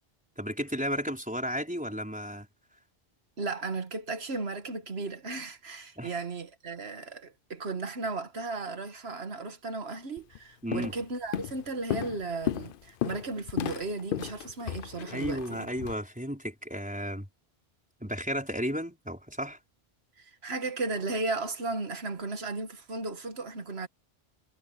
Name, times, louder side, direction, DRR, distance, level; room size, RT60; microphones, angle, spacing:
voice 1, 0.4-2.5 6.0-6.2 10.6-10.9 15.1-17.3 18.0-19.6, equal, 5° right, 4.6 m, -33 dB
voice 2, 3.4-15.7 20.2-23.9, right 3 dB, 85° right, 1.9 m, -35 dB
Walk footsteps, 10.2-10.4 10.7-11.0 11.3-15.9, left 11 dB, 65° left, 0.7 m, -34 dB
omnidirectional pair, 1.0 m